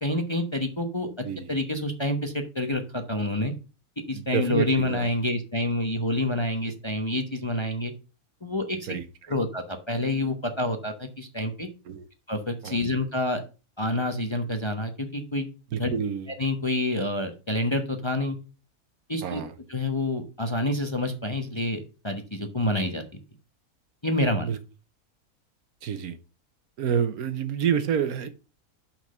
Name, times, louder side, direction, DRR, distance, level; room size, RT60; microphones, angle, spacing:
voice 1, 0.0-1.1 1.5-3.5 4.1-7.9 8.4-8.9 9.3-11.7 12.3-13.4 13.8-15.5 15.8-15.9 16.4-18.4 19.1-19.4 19.7-23.0 24.0-24.5, left 1 dB, 20° left, 5 dB, 0.8 m, -27 dB
voice 2, 4.1-5.1 8.9-9.0 11.9-12.1 12.6-12.8 15.7-16.3 19.2-19.5 24.4-24.6 25.8-26.2 26.8-28.3, right 8 dB, 75° right, 11 dB, 1.3 m, -28 dB
6.0 x 5.8 x 6.5 m, 0.32 s
omnidirectional pair, 1.6 m